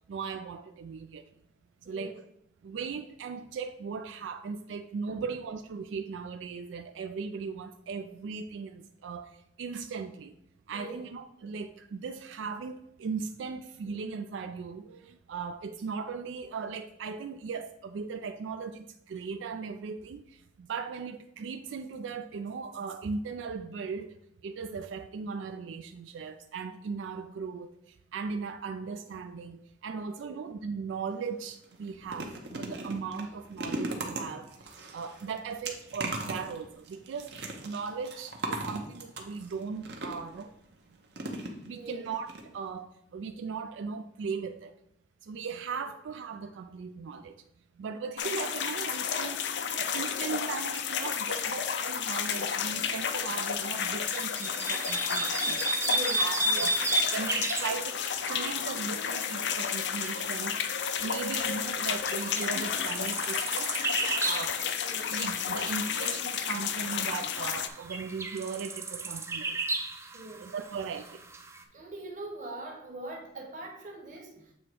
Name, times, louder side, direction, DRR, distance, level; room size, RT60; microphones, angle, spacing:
voice 1, 0.1-1.2 1.9-2.2 2.6-10.3 10.7-20.2 20.6-24.1 24.4-27.7 28.1-37.4 37.6-40.5 41.6-44.7 45.2-47.3 47.8-56.8 57.1-60.5 60.9-63.7 64.2-64.6 65.1-69.6 70.4-71.2, right 5 dB, 90° right, 8 dB, 0.3 m, -38 dB
voice 2, 1.8-2.2 5.1-5.2 10.7-11.0 30.0-30.4 41.7-42.1 55.8-56.7 64.8-65.2 70.1-70.5 71.7-74.5, right 1 dB, 40° right, 1 dB, 1.2 m, -43 dB
sound 1, 31.1-31.3 31.6-40.4 41.1-41.9 42.3-42.4 42.7-42.8, right 2 dB, 65° right, 0.9 m, -38 dB
sound 2, 48.2-67.7, left 7 dB, 75° left, 0.5 m, -32 dB
sound 3, 52.7-71.6, right 2 dB, 15° right, 0.4 m, -35 dB
7.7 x 2.9 x 4.6 m, 0.76 s
head